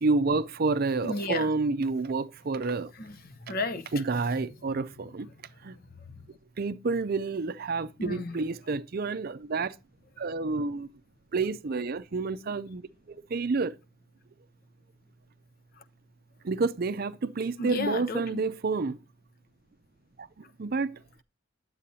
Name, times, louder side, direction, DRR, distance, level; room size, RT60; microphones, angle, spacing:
voice 1, 0.0-2.9 3.9-5.3 5.6-5.8 6.6-9.8 10.2-10.9 11.3-12.8 13.1-13.8 16.4-19.0 20.2-21.0, right 3 dB, 45° right, 0.5 m, -29 dB
voice 2, 1.0-1.5 3.0-3.9 4.6-4.8 8.0-8.4 17.6-18.4, left 2 dB, 45° left, 0.8 m, -33 dB
9.9 x 7.6 x 2.7 m
head